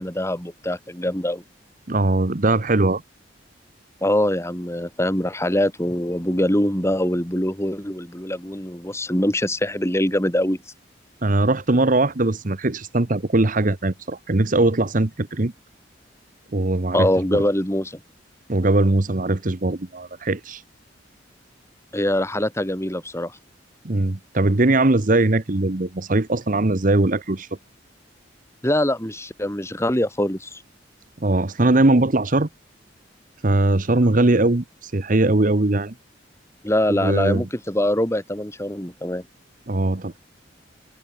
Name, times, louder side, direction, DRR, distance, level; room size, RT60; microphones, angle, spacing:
voice 1, 0.0-1.4 4.0-10.6 16.9-18.0 21.9-23.4 28.6-30.6 36.6-39.2, left 1 dB, 15° left, 4.4 m, -23 dB
voice 2, 1.9-3.0 11.2-15.5 16.5-17.4 18.5-20.6 23.8-27.5 31.2-32.5 33.4-35.9 36.9-37.5 39.7-40.2, right 2 dB, 45° right, 1.1 m, -20 dB
head